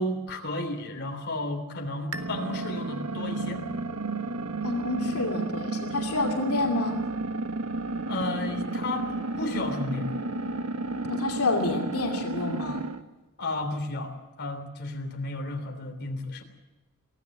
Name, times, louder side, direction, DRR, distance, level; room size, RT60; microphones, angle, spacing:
voice 1, 0.0-3.6 8.1-10.1 13.4-14.1 14.4-16.4, left 1 dB, 50° left, 3 dB, 3.3 m, -33 dB
sound 1, 2.1-13.0, right 2 dB, 85° right, 1.4 m, -32 dB
voice 2, 4.6-7.1 11.1-12.8, left 2 dB, 80° left, 2 dB, 2.8 m, -28 dB
23.5 x 16.5 x 7.4 m, 1.1 s
head